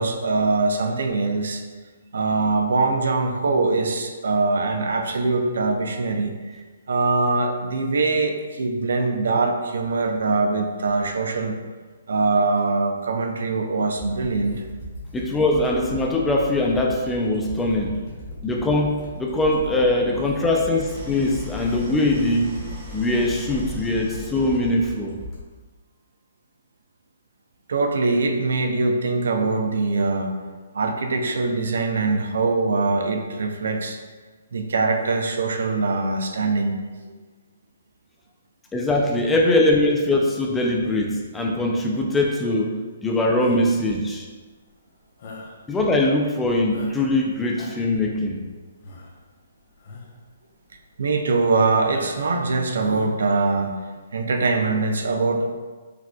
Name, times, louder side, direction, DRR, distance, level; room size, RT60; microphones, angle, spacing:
voice 1, 0.0-1.6 2.1-11.5 12.1-14.6 27.7-30.3 30.7-34.0 34.5-36.8 37.0-37.1 51.0-53.7 54.1-55.5, right 3 dB, 75° right, 4 dB, 0.4 m, -23 dB
sound 1, 14.0-25.4, left 1 dB, 30° left, 1.2 m, -37 dB
voice 2, 15.1-18.0 18.4-22.6 22.9-25.2 38.7-44.3 45.7-48.4, left 1 dB, 10° left, 0 dB, 0.3 m, -22 dB
Idling, 20.8-25.0, equal, 20° right, 0.8 m, -39 dB
sound 2, 43.4-43.8 45.2-45.6 46.2-46.3 46.7-47.2 47.5-48.0 48.8-49.2 49.8-50.1 50.7-50.8 51.8-52.4 52.7-53.1, left 3 dB, 50° left, 0.6 m, -40 dB
4.7 x 2.3 x 2.2 m, 1.4 s
hypercardioid pair, 150°, 0 cm